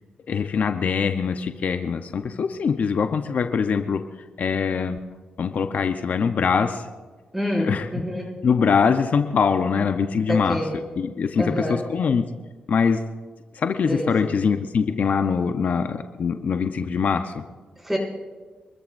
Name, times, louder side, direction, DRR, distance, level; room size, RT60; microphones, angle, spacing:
voice 1, 0.3-4.0 4.4-5.0 5.4-6.9 7.6-7.9 8.4-10.6 11.0-12.3 12.7-13.0 13.5-17.4, left 6 dB, 65° left, 7 dB, 0.8 m, -23 dB
voice 2, 7.3-8.4 10.3-10.8 11.4-11.8 13.9-14.3 17.8-18.0, equal, 5° right, -2 dB, 5.8 m, -27 dB
26.5 x 13.5 x 2.6 m, 1.4 s
supercardioid pair, 55°, 3 cm